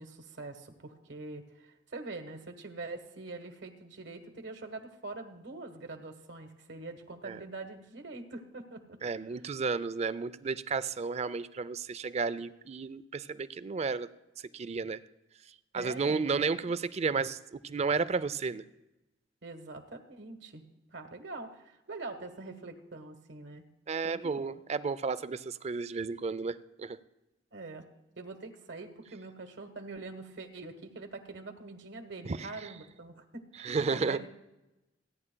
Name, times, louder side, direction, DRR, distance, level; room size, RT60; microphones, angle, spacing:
voice 1, 0.0-9.0 15.7-16.7 19.4-20.6 20.9-23.6 23.9-24.6 27.5-27.8 28.2-34.3, right 3 dB, 70° right, 6 dB, 1.3 m, -44 dB
voice 2, 9.0-14.1 14.5-15.0 15.7-18.6 23.9-27.0 32.3-32.5 33.6-34.2, right 4 dB, 35° right, 15 dB, 0.4 m, -32 dB
29.0 x 9.9 x 2.2 m, 0.98 s
head